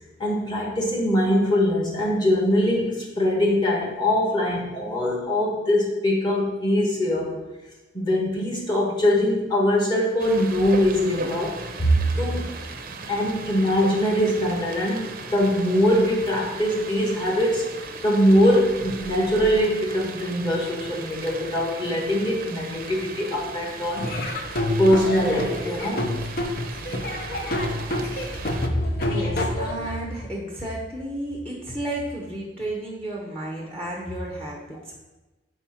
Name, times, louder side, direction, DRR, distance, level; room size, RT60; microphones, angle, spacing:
voice 1, 0.2-7.3 7.9-12.5 13.1-24.1 24.8-26.2, equal, 25° left, -3 dB, 1.5 m, -22 dB
sound 1, 10.2-28.7, right 3 dB, 50° right, 0.6 m, -37 dB
Laughter / Drum, 24.0-30.0, left 1 dB, 55° left, 0.8 m, -28 dB
voice 2, 28.6-35.0, right 1 dB, 5° left, -3 dB, 0.8 m, -31 dB
4.8 x 4.4 x 5.7 m, 1.1 s
head